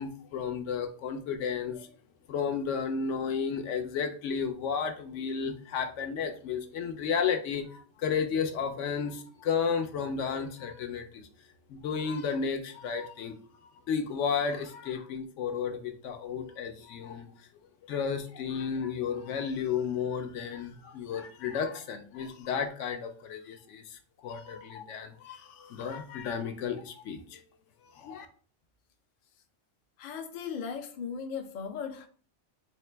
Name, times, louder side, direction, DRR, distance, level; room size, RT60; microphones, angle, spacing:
voice 1, 0.0-1.9 2.3-11.3 11.7-13.3 13.9-17.3 17.9-27.4 27.9-28.3, left 6 dB, 75° left, 0.9 m, -33 dB
voice 2, 30.0-32.1, left 6 dB, 55° left, 0.6 m, -37 dB
3.9 x 2.9 x 3.2 m
omnidirectional pair, 1.3 m